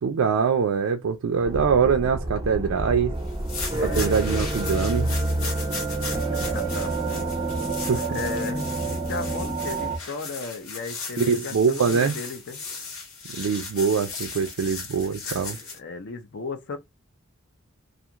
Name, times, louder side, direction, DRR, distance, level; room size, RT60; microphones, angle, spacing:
voice 1, 0.0-3.1 3.8-5.1 7.8-8.2 11.2-12.2 13.3-15.6, right 6 dB, 75° right, 0.4 m, -23 dB
sound 1, 1.4-10.0, right 2 dB, 15° right, 0.5 m, -28 dB
sound 2, 3.3-15.8, left 4 dB, 85° left, 1.1 m, -37 dB
voice 2, 3.8-4.3 6.3-7.3 8.1-12.6 15.7-16.8, left 4 dB, 55° left, 0.5 m, -35 dB
2.5 x 2.4 x 2.8 m
head